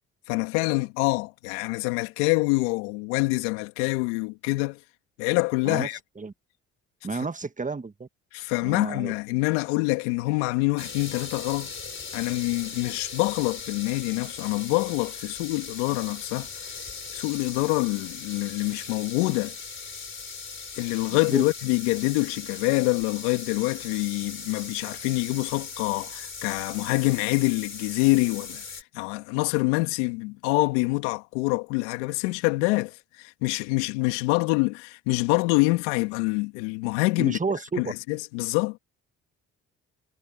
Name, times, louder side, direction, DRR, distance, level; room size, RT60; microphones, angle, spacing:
voice 1, 0.3-4.8 5.2-6.0 8.3-11.7 12.1-16.8 17.1-19.6 20.8-28.6 28.9-37.4 37.8-38.8, left 24 dB, 85° left, 2.3 m, -26 dB
voice 2, 7.0-8.1 8.6-9.1 21.1-21.4 37.2-37.9, right 4 dB, 20° right, 1.6 m, -31 dB
sound 1, 10.8-28.8, left 5 dB, 35° left, 3.9 m, -39 dB
hypercardioid pair, 50°, 35 cm